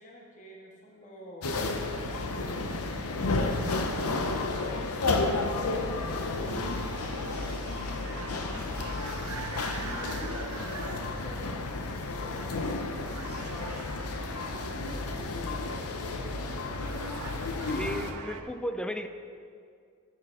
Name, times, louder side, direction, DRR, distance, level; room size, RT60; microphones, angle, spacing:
voice 1, 0.0-1.6 2.0-16.5, left 1 dB, 35° left, -3 dB, 1.8 m, -49 dB
sound 1, 1.4-18.1, left 3 dB, 80° left, 0.9 m, -32 dB
sound 2, 6.0-11.6 12.4-12.7 13.0-14.9 16.3-16.4 16.7-18.4, right 5 dB, 80° right, 0.8 m, -44 dB
voice 2, 17.7-19.1, equal, 5° left, 8 dB, 0.4 m, -34 dB
11.0 x 8.9 x 4.9 m, 2.3 s
head